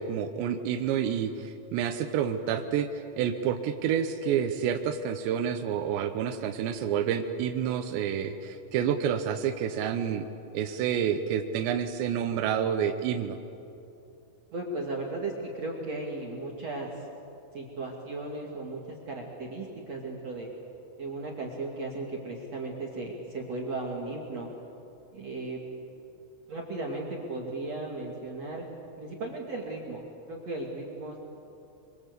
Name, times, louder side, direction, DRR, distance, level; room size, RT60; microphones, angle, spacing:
voice 1, 0.0-2.9 3.2-10.2 10.5-13.3, right 8 dB, 75° right, 6 dB, 2.8 m, -29 dB
voice 2, 14.5-17.1 17.5-20.5 21.0-24.5 25.1-25.6 26.5-28.6 29.0-31.2, right 2 dB, 45° right, -1 dB, 2.5 m, -36 dB
26.5 x 24.0 x 8.1 m, 2.7 s
omnidirectional pair, 6.0 m